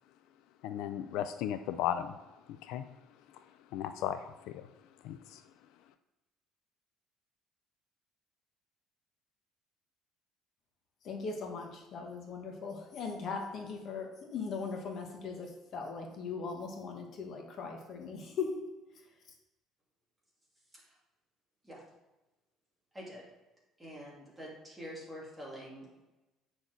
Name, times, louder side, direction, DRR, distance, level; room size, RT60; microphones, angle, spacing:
voice 1, 0.6-2.1 2.6-2.9 3.7-4.7 5.0-5.4, left 10 dB, 75° left, 10 dB, 0.4 m, -35 dB
voice 2, 11.0-18.5 18.9-19.0, left 5 dB, 45° left, 2 dB, 1.3 m, -39 dB
voice 3, 23.8-26.0, equal, 5° right, -5 dB, 2.4 m, -46 dB
8.3 x 6.4 x 3.9 m, 1.1 s
cardioid pair, 170°, 0 cm